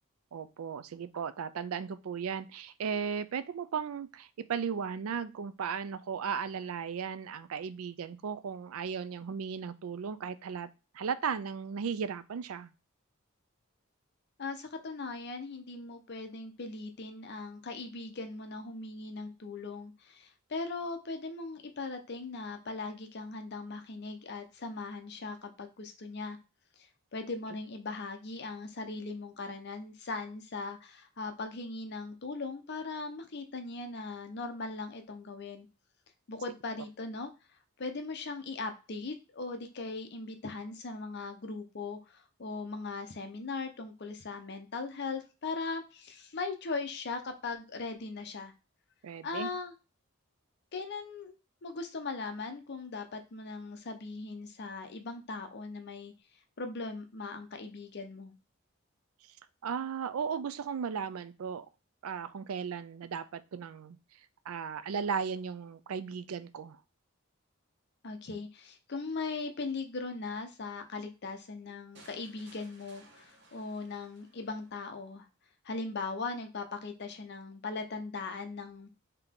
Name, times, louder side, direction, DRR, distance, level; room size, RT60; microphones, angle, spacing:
voice 1, 0.3-10.7 10.9-12.7 49.0-49.5 59.6-61.7 62.0-64.0 64.5-66.8, right 6 dB, 85° right, 14 dB, 0.4 m, -36 dB
voice 2, 14.4-26.4 26.8-35.7 36.3-37.3 37.8-48.5 49.2-49.7 50.7-51.3 51.6-56.1 56.6-58.4 68.0-75.2 75.6-78.9, left 3 dB, 55° left, 6 dB, 0.6 m, -39 dB
sound 1, 71.9-74.9, right 2 dB, 55° right, 1.0 m, -59 dB
3.7 x 2.9 x 3.6 m, 0.30 s
head